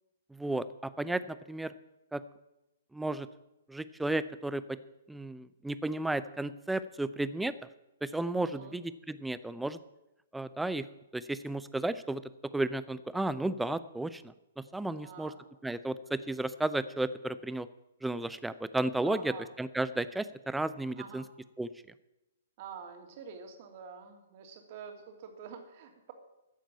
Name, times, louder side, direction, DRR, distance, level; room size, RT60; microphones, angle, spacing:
voice 1, 0.3-1.7 2.1-2.2 2.9-3.3 3.7-4.8 5.1-7.5 8.0-9.8 10.3-10.9 11.1-12.2 12.5-15.3 15.6-17.7 18.0-21.3 21.6-21.7, right 2 dB, 5° right, 14 dB, 0.6 m, -33 dB
voice 2, 8.4-8.8 14.9-15.4 19.0-19.5 21.0-21.2 22.6-26.1, right 6 dB, 45° right, 5 dB, 2.6 m, -47 dB
14.5 x 7.4 x 8.5 m, 0.94 s
figure-of-eight pair, 120°, 0 cm